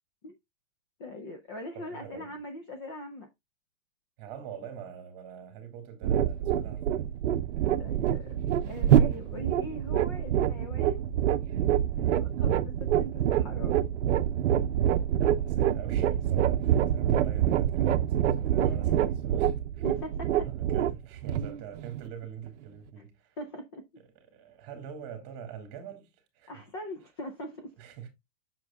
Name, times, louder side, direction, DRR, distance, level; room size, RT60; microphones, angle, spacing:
voice 1, 1.0-3.3 6.4-6.7 7.8-11.1 11.9-13.8 18.6-19.0 19.8-20.5 23.4-23.8 26.5-27.7, left 1 dB, 20° left, 0.5 m, -41 dB
voice 2, 1.8-2.4 4.2-7.1 9.2-9.5 11.9-12.4 15.2-19.8 20.3-23.4 24.2-26.5 27.8-28.1, right 8 dB, 25° right, 1.9 m, -45 dB
sound 1, 6.0-22.5, right 10 dB, 65° right, 0.7 m, -26 dB
7.4 x 6.4 x 2.3 m
supercardioid pair, 170°, 38 cm